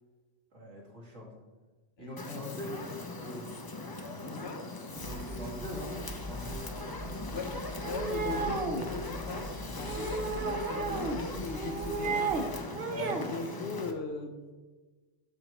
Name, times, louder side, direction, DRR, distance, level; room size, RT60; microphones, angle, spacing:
voice 1, 0.5-1.3 2.0-3.5 5.0-5.9 6.3-6.7 12.9-13.2, equal, 80° right, -5 dB, 2.3 m, -42 dB
voice 2, 2.0-2.6 4.2-4.6 7.3-7.5 7.9-12.3 13.3-14.5, left 4 dB, 65° left, 7 dB, 0.9 m, -39 dB
Fire, 2.2-13.9, left 2 dB, 30° left, 0.4 m, -40 dB
sound 1, 4.9-12.6, equal, 15° right, 1.3 m, -43 dB
sound 2, 7.8-8.9 9.8-11.2 11.6-12.5 12.7-13.3, right 5 dB, 60° right, 0.9 m, -33 dB
12.5 x 4.4 x 3.0 m, 1.3 s
omnidirectional pair, 1.3 m